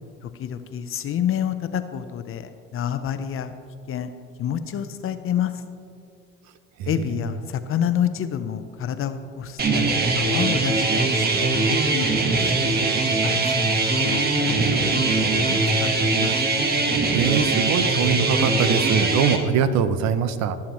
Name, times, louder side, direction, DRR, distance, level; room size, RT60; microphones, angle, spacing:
voice 1, 0.4-3.5 3.9-4.1 4.4-5.5 6.9-12.9 13.2-16.7, left 9 dB, 45° left, 10 dB, 0.8 m, -29 dB
voice 2, 6.8-7.3 17.1-20.6, right 7 dB, 60° right, 12 dB, 0.8 m, -23 dB
sound 1, 9.6-19.4, right 3 dB, 30° right, 1.3 m, -21 dB
20.5 x 7.2 x 3.1 m, 2.3 s
supercardioid pair, 85°, 31 cm